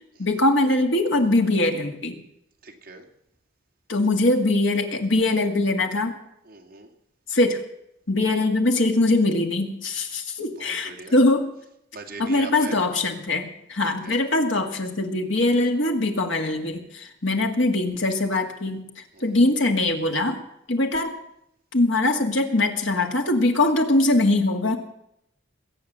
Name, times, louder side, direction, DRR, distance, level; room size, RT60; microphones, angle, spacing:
voice 1, 0.2-2.2 3.9-6.2 7.3-7.6 8.1-11.5 12.2-20.4 20.7-21.1 21.7-24.8, left 2 dB, 70° left, 4 dB, 2.1 m, -22 dB
voice 2, 2.6-3.1 6.4-6.9 10.6-11.2 11.9-12.8 14.0-14.2 19.1-19.3, right 3 dB, 45° right, 1 dB, 2.3 m, -41 dB
21.5 x 8.8 x 7.5 m, 0.78 s
head